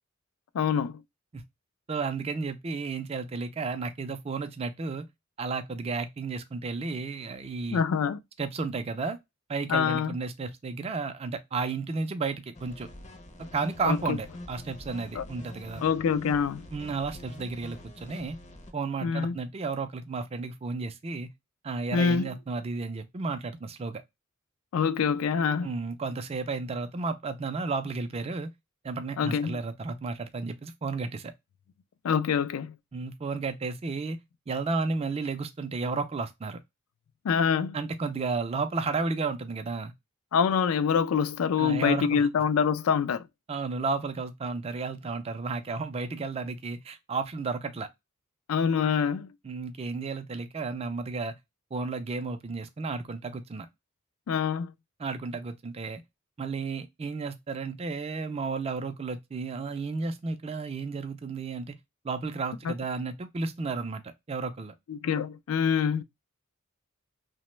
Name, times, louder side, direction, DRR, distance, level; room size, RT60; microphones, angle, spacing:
voice 1, 0.5-1.0 7.7-8.2 9.7-10.1 13.8-14.2 15.1-15.2 15.8-16.6 19.0-19.4 21.9-22.3 24.7-25.7 29.2-29.6 32.0-32.8 37.2-37.8 40.3-43.2 48.5-49.3 54.3-54.7 62.6-62.7 64.9-66.0, left 6 dB, 80° left, 0.3 m, -25 dB
voice 2, 1.9-5.1 5.4-7.8 8.4-9.2 9.5-12.9 13.5-15.8 16.7-18.4 18.7-21.3 21.6-24.0 25.6-28.5 28.8-31.3 32.9-34.2 34.5-36.6 37.7-39.9 41.6-42.3 43.5-47.9 49.4-51.3 51.7-53.7 55.0-56.0 56.4-61.8 62.0-64.7, right 4 dB, 30° right, 0.4 m, -33 dB
sound 1, 12.5-18.7, left 1 dB, 30° left, 0.5 m, -45 dB
2.9 x 2.1 x 3.1 m
head